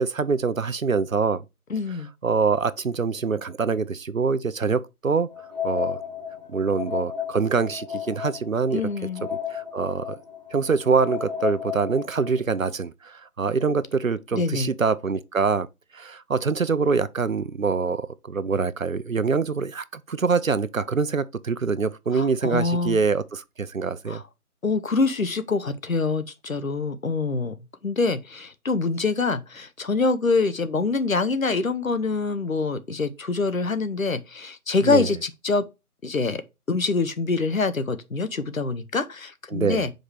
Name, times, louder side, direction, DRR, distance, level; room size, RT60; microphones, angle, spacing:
voice 1, 0.0-1.4 2.2-5.3 5.6-6.0 6.5-8.8 9.5-10.1 10.5-15.7 15.9-24.2 34.8-35.1 39.5-39.8, right 5 dB, 60° right, 0.7 m, -24 dB
voice 2, 1.7-2.1 8.7-9.3 14.3-14.7 22.1-23.0 24.1-24.2 24.6-27.6 27.8-35.7 36.0-36.4 36.7-39.9, left 3 dB, 60° left, 0.9 m, -25 dB
sound 1, 5.3-12.4, left 9 dB, 30° left, 1.4 m, -33 dB
5.2 x 3.9 x 4.7 m
figure-of-eight pair, 165°, 45 cm